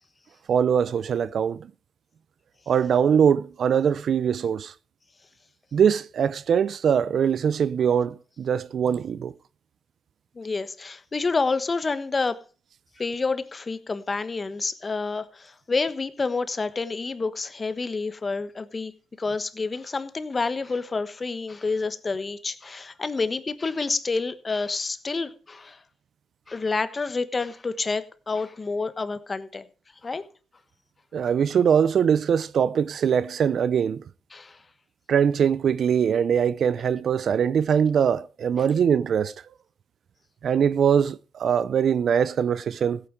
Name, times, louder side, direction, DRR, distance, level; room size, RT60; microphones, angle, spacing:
voice 1, 0.5-1.7 2.7-4.7 5.7-9.3 31.1-34.0 35.1-39.3 40.4-43.0, right 7 dB, 60° right, 0.6 m, -22 dB
voice 2, 10.3-12.4 13.0-18.9 19.2-25.8 26.5-29.6 30.0-30.2 34.3-34.6, left 4 dB, 30° left, 1.2 m, -28 dB
15.5 x 9.0 x 4.7 m
cardioid pair, 85°, 0 cm